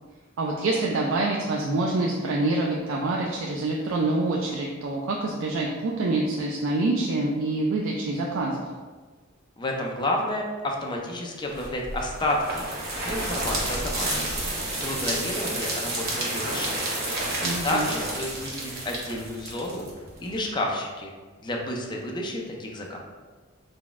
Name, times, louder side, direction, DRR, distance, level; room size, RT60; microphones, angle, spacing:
voice 1, 0.4-8.6 17.4-17.9, right 2 dB, 70° right, -2 dB, 0.4 m, -26 dB
voice 2, 9.6-12.7 13.0-14.3 14.8-16.8 17.6-19.9 20.2-21.1 21.4-23.0, left 1 dB, 25° left, 0 dB, 0.5 m, -30 dB
sound 1, 11.5-20.3, right 1 dB, 50° right, 0.9 m, -30 dB
4.0 x 2.2 x 3.5 m, 1.4 s
head